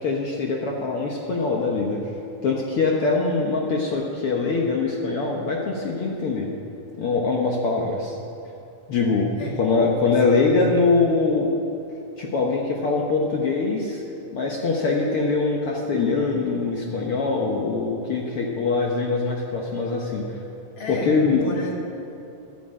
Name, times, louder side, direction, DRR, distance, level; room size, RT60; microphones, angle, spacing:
voice 1, 0.0-2.1 2.4-6.5 7.0-8.2 8.9-9.3 9.6-11.5 12.2-14.0 14.3-20.4 20.9-21.5, left 4 dB, 75° left, -1 dB, 1.3 m, -23 dB
voice 2, 10.0-10.8 20.8-21.7, equal, 40° left, -2 dB, 2.4 m, -34 dB
12.5 x 10.0 x 8.6 m, 2.8 s
omnidirectional pair, 4.2 m